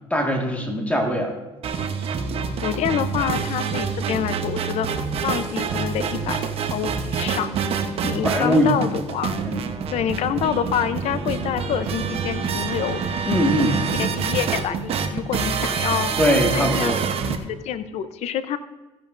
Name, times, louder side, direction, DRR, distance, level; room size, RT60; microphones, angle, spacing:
voice 1, 0.1-1.3 8.0-8.9 9.4-9.6 13.3-13.8 16.2-17.0, equal, 10° left, 1 dB, 1.8 m, -21 dB
sound 1, 1.6-17.4, right 6 dB, 55° right, 1.0 m, -26 dB
voice 2, 2.6-4.9 5.2-6.4 6.7-7.6 8.1-9.3 9.9-13.0 14.0-16.1 16.5-17.0 17.2-18.6, left 9 dB, 65° left, 12 dB, 0.7 m, -27 dB
15.0 x 11.0 x 2.6 m, 1.1 s
cardioid pair, 115°, 12 cm